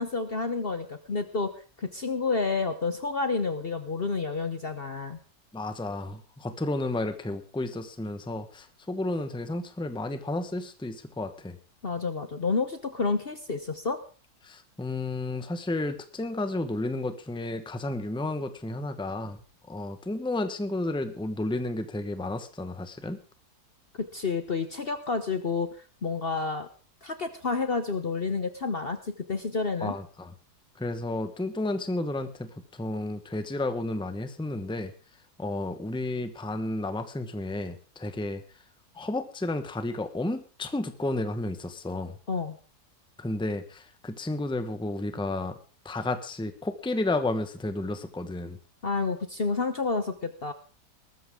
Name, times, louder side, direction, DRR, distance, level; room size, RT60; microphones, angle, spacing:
voice 1, 0.0-1.5 1.8-5.2 11.8-14.0 24.0-25.7 26.0-26.7 27.0-30.0 42.3-42.6 48.8-50.5, left 4 dB, 40° left, 9 dB, 1.1 m, -29 dB
voice 2, 5.5-11.6 14.4-19.4 19.7-23.2 29.8-30.3 30.8-32.5 32.8-34.9 35.4-38.4 38.9-42.1 43.2-45.6 45.8-48.6, left 2 dB, 5° left, 9 dB, 1.0 m, -32 dB
19.5 x 13.5 x 3.7 m, 0.36 s
omnidirectional pair, 1.7 m